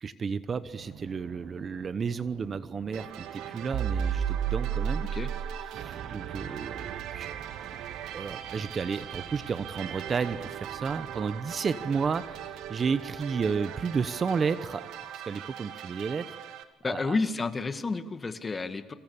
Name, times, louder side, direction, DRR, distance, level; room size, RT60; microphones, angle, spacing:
voice 1, 0.0-5.0 5.7-7.3 8.1-14.9 15.1-16.4 16.9-17.2, right 5 dB, 30° right, 13 dB, 0.9 m, -32 dB
sound 1, 0.7-13.5, right 8 dB, 55° right, 1.1 m, -36 dB
sound 2, 2.9-16.6, right 10 dB, 75° right, 2.4 m, -41 dB
voice 2, 16.8-18.9, left 3 dB, 20° left, 9 dB, 1.9 m, -30 dB
29.5 x 26.5 x 7.2 m, 1.2 s
cardioid pair, 120°, 0 cm